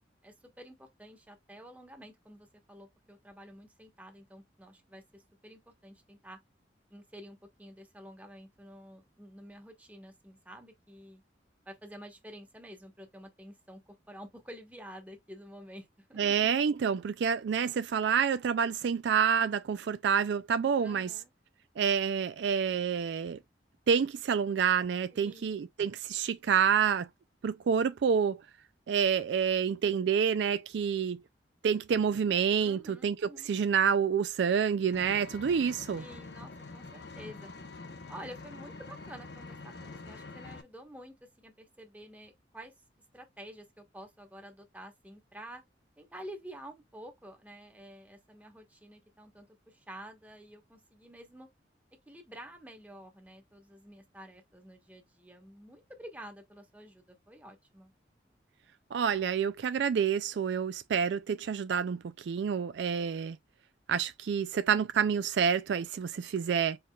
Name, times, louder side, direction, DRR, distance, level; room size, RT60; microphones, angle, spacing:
voice 1, 0.2-6.4 6.9-11.2 11.7-16.5 20.8-21.3 25.1-25.6 32.6-33.5 36.0-37.5 38.1-42.7 43.1-45.6 46.0-51.5 52.1-57.9, equal, 10° right, 1.1 m, -50 dB
voice 2, 16.2-21.1 21.8-23.4 23.9-27.1 27.4-28.4 28.9-31.2 31.6-33.2 33.5-36.0 58.9-63.4 63.9-66.8, right 7 dB, 65° right, 0.3 m, -28 dB
Vehicle, 34.9-40.6, left 3 dB, 65° left, 0.8 m, -46 dB
4.6 x 4.4 x 2.3 m
head